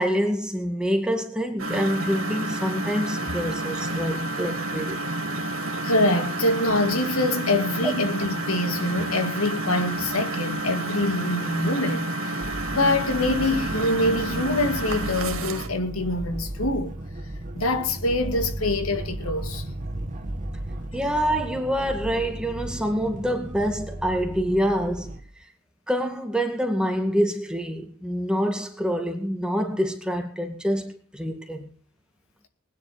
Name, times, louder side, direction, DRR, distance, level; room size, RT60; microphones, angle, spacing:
voice 1, 0.0-5.0 7.8-7.9 20.9-25.2 25.9-31.7, equal, 5° right, 2.1 m, -26 dB
Engine, 1.6-15.7, right 2 dB, 70° right, 2.4 m, -30 dB
voice 2, 5.8-12.1 12.7-16.9 17.5-19.7, left 2 dB, 80° left, 2.1 m, -25 dB
sound 1, 12.4-25.2, right 1 dB, 35° right, 1.8 m, -35 dB
20.5 x 10.0 x 5.1 m
head